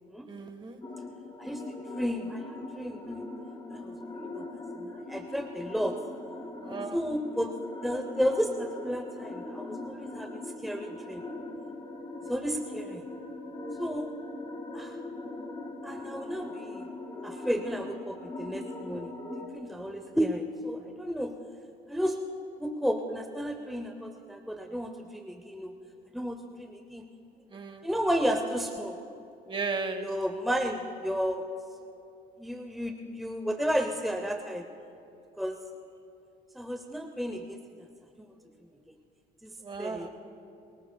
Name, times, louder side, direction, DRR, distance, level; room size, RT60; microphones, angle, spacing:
voice 1, 0.3-0.8 6.6-7.0 27.5-27.8 29.5-30.1 39.6-40.1, right 4 dB, 30° right, 7 dB, 1.3 m, -35 dB
sound 1, 0.8-19.5, left 2 dB, 25° left, 2.2 m, -41 dB
voice 2, 1.4-3.3 3.7-3.9 4.3-4.5 4.8-6.0 6.9-7.5 7.8-11.2 12.3-13.0 13.8-14.1 14.7-15.0 15.8-16.9 17.2-19.1 19.5-21.3 21.9-22.2 22.6-25.8 26.1-27.0 27.8-29.0 30.0-31.4 32.4-34.7 35.4-35.6 36.5-37.6 39.4-39.5 39.8-40.1, equal, ahead, 4 dB, 0.7 m, -32 dB
29.5 x 18.5 x 2.3 m, 2.7 s
cardioid pair, 110°, 17 cm